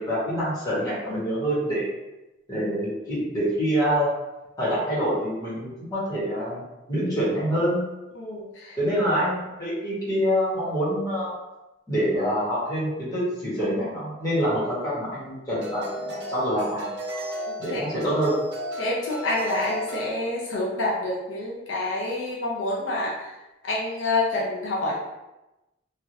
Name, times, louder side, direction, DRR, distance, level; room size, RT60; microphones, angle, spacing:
voice 1, 0.0-1.9 2.5-4.1 4.6-7.8 8.8-11.3 11.9-16.9 17.6-18.3, equal, 20° left, -10 dB, 1.4 m, -26 dB
voice 2, 8.1-8.8 17.7-17.8 18.8-23.3 23.6-25.0, left 2 dB, 80° left, -4 dB, 0.7 m, -27 dB
sound 1, 14.2-14.4 15.6-20.1, equal, 65° right, 0.6 m, -34 dB
3.1 x 2.5 x 2.7 m, 0.99 s
head